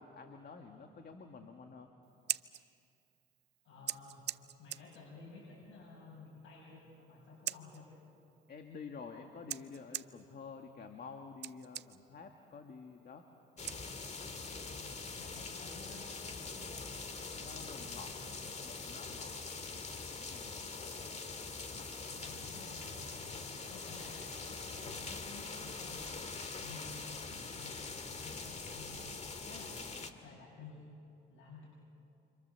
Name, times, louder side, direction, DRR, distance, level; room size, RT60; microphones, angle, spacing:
voice 1, 0.0-1.9 8.5-13.2 17.4-18.1 18.5-19.3 20.2-20.6, left 5 dB, 50° left, 4 dB, 1.9 m, -50 dB
Scissors, 2.0-14.4, right 11 dB, 60° right, 0.6 m, -46 dB
voice 2, 3.6-4.2 4.6-7.9 14.8-17.0 17.5-18.2 20.8-21.1 21.6-23.2 23.7-26.2 26.6-30.8 31.3-31.7, left 3 dB, 75° left, -4 dB, 6.8 m, -54 dB
sound 1, 13.6-30.1, left 4 dB, 35° left, 2.0 m, -43 dB
29.0 x 26.0 x 7.0 m, 2.6 s
cardioid pair, 90°, 20 cm